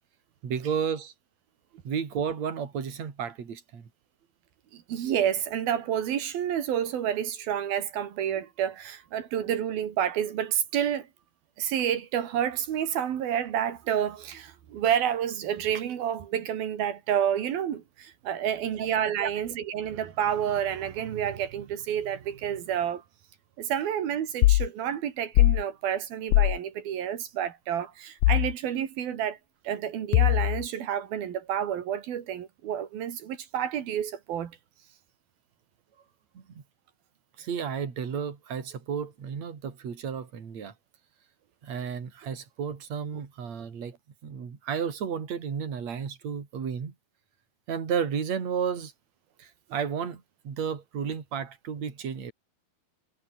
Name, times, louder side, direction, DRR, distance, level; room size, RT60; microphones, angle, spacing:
voice 1, 0.4-1.1 1.8-3.9 18.7-18.9 19.2-19.3 36.3-36.6 37.4-40.7 41.6-43.9 44.2-46.9 47.7-48.9 49.4-52.3, right 7 dB, 50° right, 4.4 m, -32 dB
voice 2, 4.7-11.1 11.6-23.0 23.6-29.4 29.6-34.5, right 9 dB, 85° right, 4.1 m, -29 dB
sound 1, 24.4-24.7 25.4-25.6 26.3-26.6 28.2-28.5 30.1-30.7, left 18 dB, 75° left, 2.0 m, -20 dB
omnidirectional pair, 4.1 m